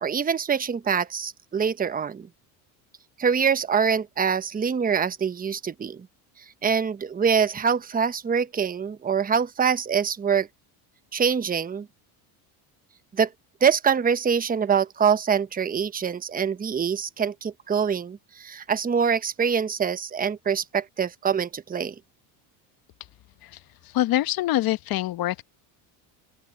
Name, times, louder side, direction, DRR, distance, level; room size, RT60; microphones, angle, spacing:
voice 1, 0.0-2.3 3.2-6.1 6.6-10.5 11.1-11.9 13.1-13.3 13.6-21.9, right 6 dB, 20° right, 1.0 m, -24 dB
voice 2, 23.8-25.4, left 14 dB, 55° left, 1.1 m, -25 dB
open air
supercardioid pair, 100°, 44 cm